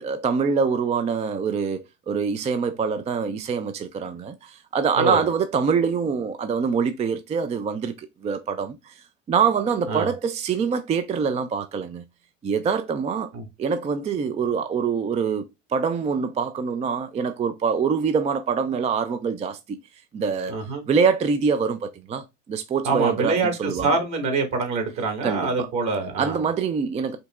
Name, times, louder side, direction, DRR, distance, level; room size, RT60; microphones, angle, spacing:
voice 1, 0.0-8.9 9.3-12.0 12.4-13.3 13.6-19.8 20.1-20.5 20.9-24.0 25.2-25.7 26.2-27.2, right 6 dB, 20° right, 0.3 m, -25 dB
voice 2, 20.5-20.8 22.8-26.4, right 3 dB, 50° right, 1.9 m, -25 dB
5.2 x 2.8 x 2.3 m
hypercardioid pair, 80°, 36 cm